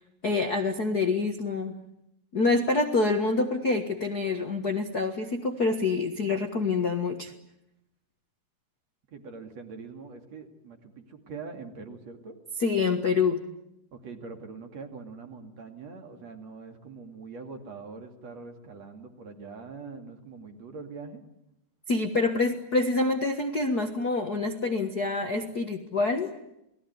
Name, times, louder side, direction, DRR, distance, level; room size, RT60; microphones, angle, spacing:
voice 1, 0.2-1.8 2.3-7.3 12.6-13.4 21.9-26.3, left 3 dB, 70° left, 5 dB, 0.9 m, -26 dB
voice 2, 9.1-12.4 13.9-21.2, right 4 dB, 45° right, 6 dB, 3.3 m, -43 dB
29.0 x 19.5 x 9.6 m, 0.84 s
omnidirectional pair, 4.6 m